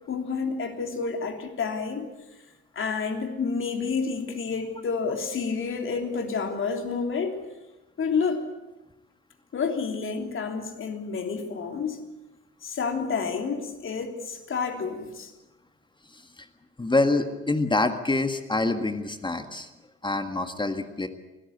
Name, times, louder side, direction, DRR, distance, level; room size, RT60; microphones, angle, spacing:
voice 1, 0.1-2.1 2.7-7.4 8.0-8.4 9.5-12.0 12.6-15.3, left 5 dB, 35° left, 3.3 m, -29 dB
voice 2, 16.1-16.5 16.8-19.7 20.0-21.1, left 2 dB, 15° left, 1.7 m, -26 dB
24.5 x 17.0 x 8.2 m
figure-of-eight pair, 60°, 34 cm